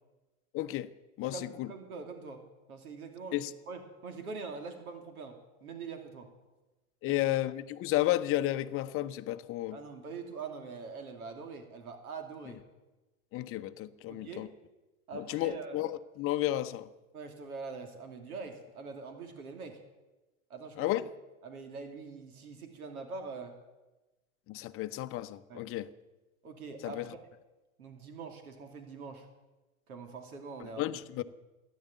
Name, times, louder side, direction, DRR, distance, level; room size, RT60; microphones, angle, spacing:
voice 1, 0.5-0.9 1.2-1.7 3.3-3.5 7.0-9.8 13.3-14.5 15.1-16.9 20.8-21.1 24.5-25.9 26.8-27.1 30.6-31.2, left 15 dB, 30° left, 0.8 m, -32 dB
voice 2, 1.3-2.4 2.7-6.3 7.1-7.2 9.7-12.6 14.1-14.5 15.1-15.8 17.1-19.8 20.5-21.0 21.4-23.6 25.5-25.7 26.4-27.0 27.8-29.3 29.9-30.8, right 4 dB, 85° right, 2.8 m, -43 dB
14.0 x 10.5 x 9.3 m
hypercardioid pair, 115°, 43 cm